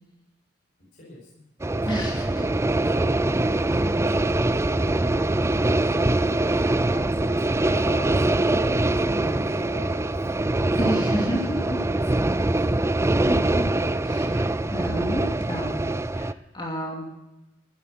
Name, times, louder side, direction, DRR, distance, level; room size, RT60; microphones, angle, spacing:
voice 1, 1.0-1.4 2.0-2.6 2.8-4.9 5.4-10.3 10.8-11.4 11.8-12.7, left 1 dB, 55° left, -4 dB, 5.1 m, -43 dB
sound 1, 1.6-16.3, right 2 dB, 15° right, 0.5 m, -23 dB
voice 2, 1.8-2.5 10.8-11.8 13.2-13.6 14.0-15.8 16.1-17.0, equal, 25° left, -1 dB, 2.6 m, -31 dB
15.0 x 10.5 x 7.6 m, 0.96 s
head